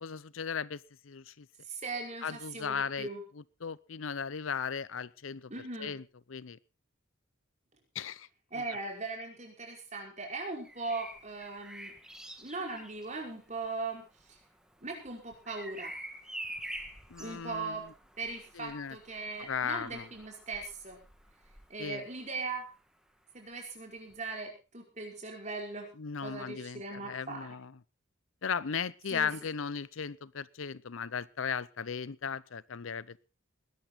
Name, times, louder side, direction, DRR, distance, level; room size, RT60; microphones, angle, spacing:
voice 1, 0.0-1.5 2.2-3.1 3.6-5.5 5.8-6.0 6.3-6.6 7.9-8.3 8.5-8.6 17.1-17.8 18.6-19.0 19.4-20.1 21.8-22.0 26.0-27.7 28.4-33.2, left 6 dB, 80° left, 20 dB, 0.7 m, -36 dB
voice 2, 1.7-3.2 5.5-5.9 8.5-11.9 12.4-14.0 14.3-14.4 14.8-15.9 17.2-17.8 18.2-21.0 21.7-22.6 23.3-25.9 26.2-27.5 29.1-29.3, right 3 dB, 35° right, 1 dB, 5.3 m, -39 dB
Bird vocalization bird call bird song, 10.6-22.4 24.1-24.3, right 1 dB, 5° right, 1.8 m, -48 dB
20.0 x 12.0 x 4.0 m, 0.32 s
head